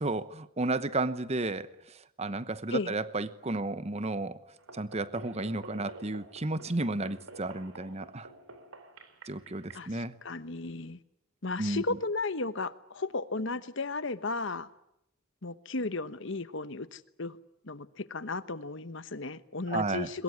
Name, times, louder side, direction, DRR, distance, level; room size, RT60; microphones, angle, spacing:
voice 1, 0.0-4.4 4.7-8.3 9.3-10.2 11.6-11.8 19.7-20.1, right 2 dB, 30° right, 14 dB, 1.0 m, -33 dB
sound 1, 4.6-9.9, right 2 dB, 90° right, 3.3 m, -49 dB
voice 2, 9.7-11.0 11.4-14.7 15.4-17.4 17.6-20.2, left 3 dB, 60° left, 13 dB, 1.1 m, -34 dB
22.0 x 21.5 x 9.7 m, 0.80 s
head